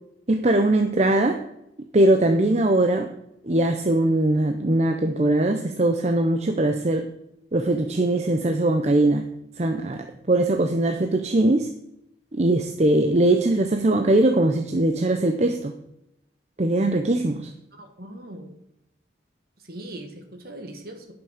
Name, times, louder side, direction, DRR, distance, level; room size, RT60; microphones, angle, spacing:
voice 1, 0.3-1.4 1.9-3.1 3.4-7.0 7.5-9.3 9.6-11.7 12.3-15.7 16.6-17.5, right 1 dB, 35° right, 6 dB, 0.6 m, -21 dB
voice 2, 17.7-18.6 19.6-21.1, right 1 dB, 55° right, 5 dB, 1.7 m, -40 dB
10.5 x 6.0 x 6.5 m, 0.80 s
head